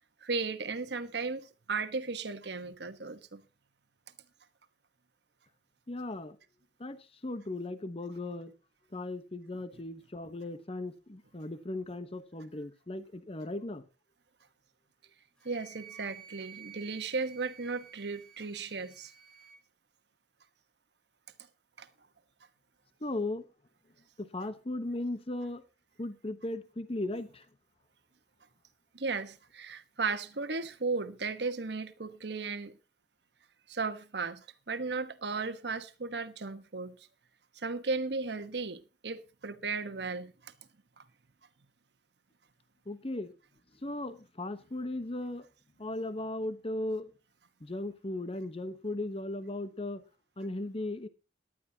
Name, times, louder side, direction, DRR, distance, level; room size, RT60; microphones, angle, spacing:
voice 1, 0.2-3.4 15.4-19.1 21.8-21.9 28.9-32.7 33.7-36.9 37.6-40.5, right 4 dB, 65° right, 1.2 m, -35 dB
voice 2, 5.9-6.4 6.8-8.5 8.9-13.8 23.0-23.5 24.2-25.6 26.0-27.4 42.9-43.3 43.8-45.5 45.8-47.1 47.6-50.0 50.4-51.1, left 2 dB, 35° left, 1.0 m, -37 dB
Wind instrument woodwind instrument, 15.4-19.6, right 8 dB, 5° left, 2.4 m, -52 dB
18.5 x 11.5 x 2.8 m
head